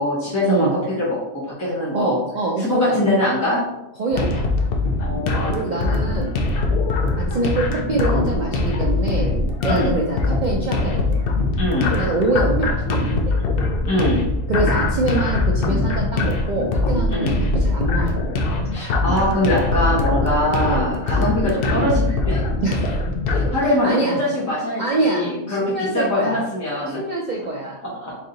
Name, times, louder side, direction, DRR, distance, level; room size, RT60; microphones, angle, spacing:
voice 1, 0.0-2.2 2.6-3.6 5.0-5.7 9.6-9.9 11.5-11.9 13.8-14.2 17.1-17.3 18.7-22.4 23.3-27.0 27.8-28.2, left 1 dB, 15° left, -8 dB, 0.8 m, -23 dB
voice 2, 1.9-3.1 4.0-4.4 5.5-6.3 7.2-9.4 9.6-11.2 12.0-13.3 14.5-18.2 20.6-20.9 21.6-21.7 22.6-22.9 23.8-24.2 24.8-26.4 26.9-27.8, right 2 dB, 65° right, -2 dB, 0.4 m, -24 dB
sound 1, 4.1-23.5, left 2 dB, 60° left, 0.6 m, -22 dB
3.2 x 2.7 x 3.8 m, 0.89 s
omnidirectional pair, 1.3 m